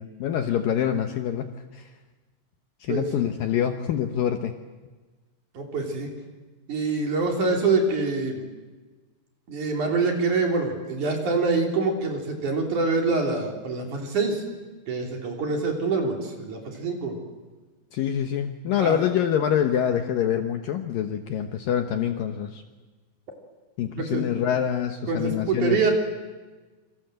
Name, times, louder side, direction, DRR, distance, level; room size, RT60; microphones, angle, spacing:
voice 1, 0.0-1.9 2.8-4.5 17.9-22.6 23.8-25.9, left 9 dB, 70° left, 7 dB, 2.3 m, -26 dB
voice 2, 5.5-6.1 6.7-8.4 9.5-14.4 14.9-17.1 18.8-19.0 24.0-24.2 25.1-25.9, right 4 dB, 45° right, 2 dB, 4.4 m, -25 dB
27.5 x 25.5 x 7.8 m, 1.3 s
omnidirectional pair, 5.0 m